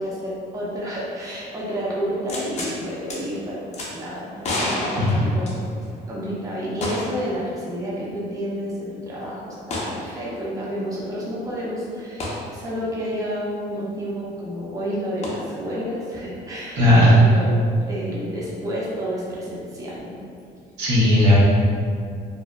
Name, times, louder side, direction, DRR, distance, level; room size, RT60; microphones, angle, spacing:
voice 1, 0.0-5.6 6.1-17.6 17.9-20.2, equal, 20° right, -6 dB, 0.6 m, -30 dB
sound 1, 2.3-2.7 3.1-3.2 3.7-3.9 4.4-5.9 6.8-7.3 7.6-7.7 9.7-10.0 12.2-12.4 15.2-15.3, left 1 dB, 40° left, 0.5 m, -28 dB
voice 2, 16.8-17.2 20.8-21.3, left 1 dB, 90° right, -7 dB, 0.8 m, -15 dB
2.5 x 2.2 x 2.2 m, 2.3 s
cardioid pair, 110°, 17 cm